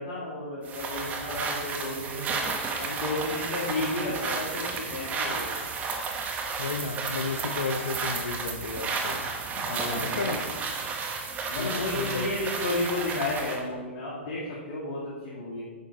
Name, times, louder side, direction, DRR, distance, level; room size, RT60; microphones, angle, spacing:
voice 1, 0.0-2.4 2.8-5.5 9.6-10.3 11.5-15.6, left 2 dB, 50° left, -7 dB, 2.1 m, -32 dB
sound 1, 0.7-13.6, right 4 dB, 25° right, 1.1 m, -32 dB
voice 2, 6.6-9.3 10.0-10.4 11.6-12.3, left 4 dB, 90° left, 5 dB, 0.6 m, -33 dB
9.2 x 6.1 x 4.1 m, 1.4 s
hypercardioid pair, 120°, 7 cm